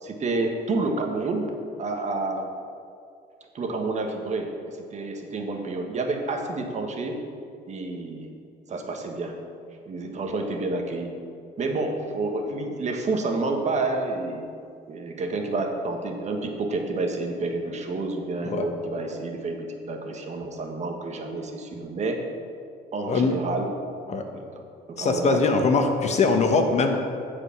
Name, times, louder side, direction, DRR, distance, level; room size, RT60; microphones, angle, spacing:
voice 1, 0.0-1.5 1.8-2.5 3.5-7.2 7.7-8.3 8.7-9.4 9.8-11.1 11.6-14.5 14.9-22.2 22.9-23.7 24.9-25.6 26.1-26.2, right 3 dB, 45° right, 3 dB, 1.4 m, -29 dB
voice 2, 25.0-27.0, left 4 dB, 40° left, 5 dB, 1.2 m, -22 dB
14.5 x 5.0 x 5.9 m, 2.4 s
cardioid pair, 110°, 17 cm